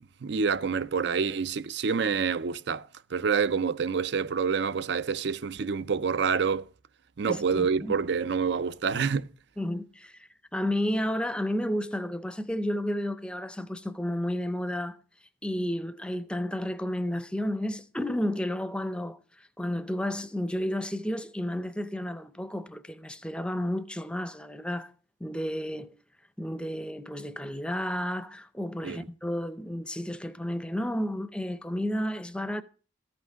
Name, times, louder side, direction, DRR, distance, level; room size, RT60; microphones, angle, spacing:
voice 1, 0.2-2.8 3.1-6.7 7.2-9.3 28.8-29.0, right 5 dB, 60° right, 0.5 m, -27 dB
voice 2, 7.3-7.9 9.6-15.0 15.4-24.9 25.2-26.0 26.4-32.6, left 1 dB, 5° left, 0.5 m, -32 dB
14.0 x 5.8 x 6.3 m
head